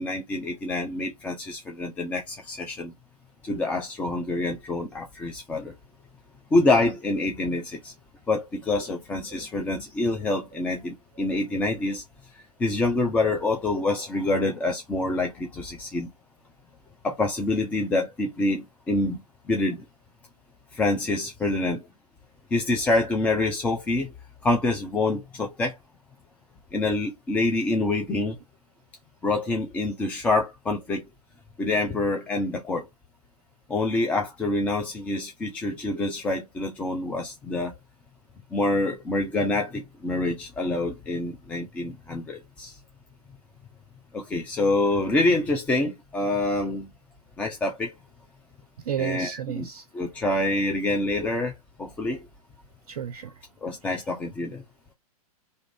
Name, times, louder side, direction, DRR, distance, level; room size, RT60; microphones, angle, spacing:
voice 1, 0.0-2.9 3.4-5.7 6.5-7.9 8.3-12.0 12.3-16.1 17.0-19.2 19.5-19.8 20.7-21.8 22.5-24.1 24.4-25.7 26.7-28.4 29.2-31.0 31.6-32.9 33.7-37.7 38.5-42.8 44.1-46.9 47.4-47.9 49.0-49.7 49.9-52.2 53.6-54.6, left 2 dB, 5° left, 0.3 m, -26 dB
voice 2, 48.9-49.8 52.9-53.3, right 9 dB, 60° right, 0.4 m, -31 dB
2.6 x 2.4 x 3.2 m
figure-of-eight pair, 110°, 20 cm